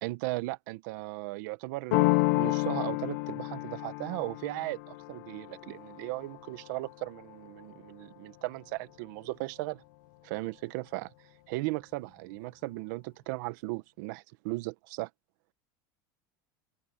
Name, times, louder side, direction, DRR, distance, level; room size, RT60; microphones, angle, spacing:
voice 1, 0.0-9.8 10.2-11.1 11.5-15.1, right 21 dB, 65° right, 1.3 m, -37 dB
sound 1, 1.9-7.5, left 23 dB, 70° left, 1.3 m, -31 dB
open air
supercardioid pair, 160°, 11 cm